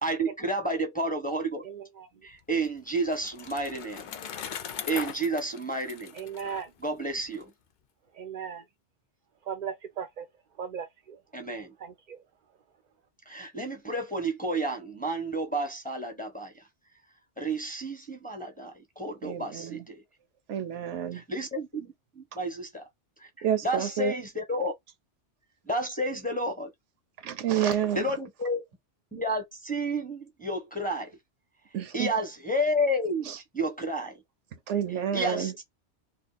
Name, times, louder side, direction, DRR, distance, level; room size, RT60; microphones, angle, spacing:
voice 1, 0.0-1.6 2.2-4.1 4.9-6.1 6.8-7.5 11.3-11.7 13.3-16.6 17.4-20.0 21.1-22.8 23.2-23.3 23.6-24.7 25.7-26.7 27.6-28.6 29.1-31.1 31.9-33.3 33.5-34.1 35.1-35.6, right 1 dB, 10° left, 0.8 m, -31 dB
voice 2, 1.6-2.1 6.1-6.7 8.1-8.6 9.4-10.3 10.6-11.2 11.8-12.2, right 7 dB, 55° right, 0.5 m, -37 dB
Bicycle, 2.3-7.4, left 8 dB, 60° left, 0.5 m, -40 dB
voice 3, 19.2-19.8 20.5-21.2 23.4-24.1 27.2-28.1 31.7-32.1 33.2-33.4 34.7-35.5, right 10 dB, 85° right, 1.1 m, -29 dB
2.7 x 2.6 x 3.9 m
omnidirectional pair, 1.2 m